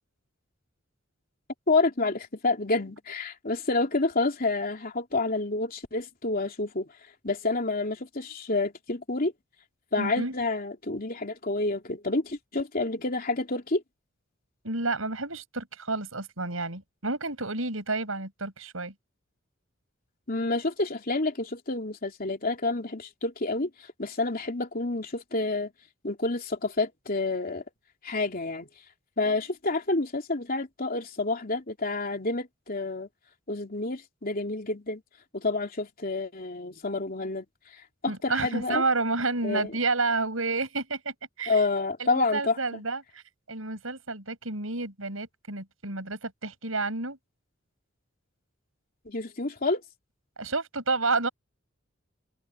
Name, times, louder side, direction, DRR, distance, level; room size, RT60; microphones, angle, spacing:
voice 1, 1.7-6.9 7.2-9.3 9.9-13.8 20.3-23.7 24.0-25.7 26.0-27.6 28.0-28.7 29.2-33.1 33.5-35.0 35.3-37.4 38.0-38.8 39.4-39.7 41.5-42.8 49.0-49.8, left 3 dB, 45° left, 3.2 m, -29 dB
voice 2, 10.0-10.3 14.6-18.9 38.1-41.6 42.0-43.2 43.5-47.2 50.4-51.3, right 3 dB, 80° right, 6.6 m, -30 dB
head